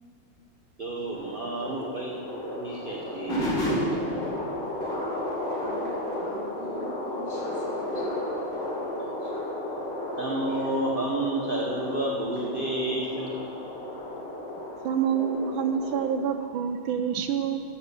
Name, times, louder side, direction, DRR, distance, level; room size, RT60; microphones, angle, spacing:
voice 1, 0.8-2.2 2.5-3.5 7.9-8.1 9.0-9.3 10.2-13.4, right 1 dB, 50° right, -3 dB, 0.6 m, -30 dB
sound 1, 1.1-16.1, left 1 dB, 60° left, 3.4 m, -33 dB
voice 2, 5.6-8.1, left 2 dB, 35° left, -7 dB, 3.5 m, -46 dB
voice 3, 14.8-17.6, right 7 dB, 75° right, 7 dB, 1.3 m, -27 dB
12.5 x 7.2 x 6.8 m, 2.4 s
omnidirectional pair, 2.3 m